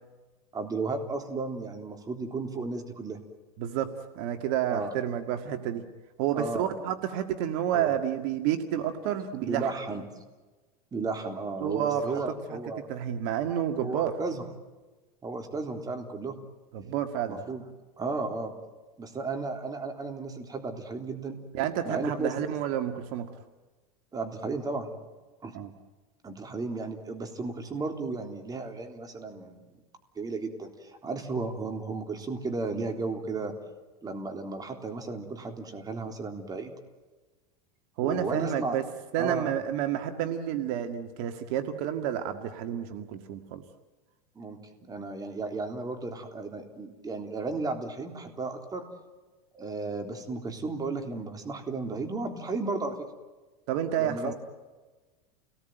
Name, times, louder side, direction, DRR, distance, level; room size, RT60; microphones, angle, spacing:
voice 1, 0.5-3.2 4.7-4.9 6.3-6.9 7.7-8.0 9.4-10.1 10.9-12.9 13.8-14.4 15.2-16.4 17.3-17.6 18.0-18.5 19.0-21.4 21.8-22.3 24.1-24.9 25.4-25.6 26.2-29.8 30.2-33.5 34.0-36.7 38.0-38.8 39.2-39.5 44.4-48.8 49.5-53.1 54.0-54.3, right 3 dB, 20° right, 5 dB, 3.7 m, -34 dB
voice 2, 3.6-5.9 6.2-9.7 11.6-12.0 12.5-12.6 12.9-14.1 16.7-17.4 21.5-23.3 25.5-25.7 38.0-38.8 39.1-43.6 53.7-54.3, right 10 dB, 60° right, 7 dB, 2.0 m, -30 dB
29.5 x 19.5 x 9.3 m, 1.2 s
supercardioid pair, 125°, 19 cm